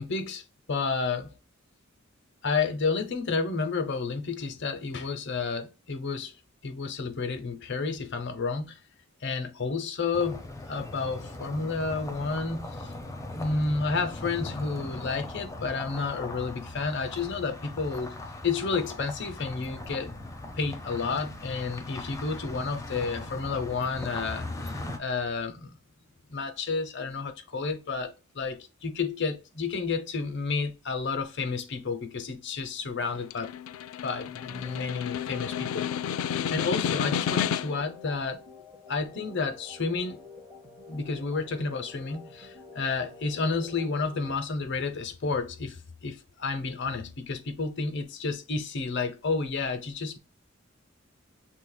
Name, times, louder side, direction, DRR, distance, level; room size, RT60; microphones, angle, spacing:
voice 1, 0.0-1.3 2.4-6.3 6.6-8.8 9.2-12.9 13.2-20.1 20.6-25.8 26.3-33.5 34.0-35.9 36.5-38.4 38.9-40.2 40.9-50.2, left 4 dB, 60° left, 0.7 m, -31 dB
sound 1, 10.1-25.0, left 2 dB, 15° left, 0.6 m, -39 dB
Snare drum, 33.0-37.9, left 8 dB, 85° left, 0.3 m, -31 dB
sound 2, 34.3-44.3, left 4 dB, 5° right, 1.4 m, -49 dB
6.5 x 3.3 x 2.2 m
head